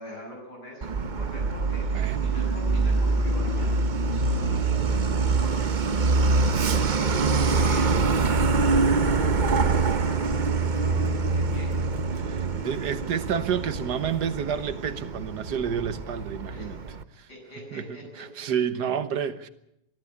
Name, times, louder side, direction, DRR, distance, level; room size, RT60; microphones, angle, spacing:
voice 1, 0.0-3.7 4.0-5.7 6.2-11.8 16.5-16.8 17.3-18.5, equal, 75° left, 8.3 m, -43 dB
Truck, 0.8-17.0, right 4 dB, 40° right, 0.7 m, -25 dB
voice 2, 1.9-2.3 12.3-16.8 17.2-17.3 17.7-19.5, right 8 dB, 75° right, 1.7 m, -30 dB
22.0 x 13.5 x 9.8 m
omnidirectional pair, 1.8 m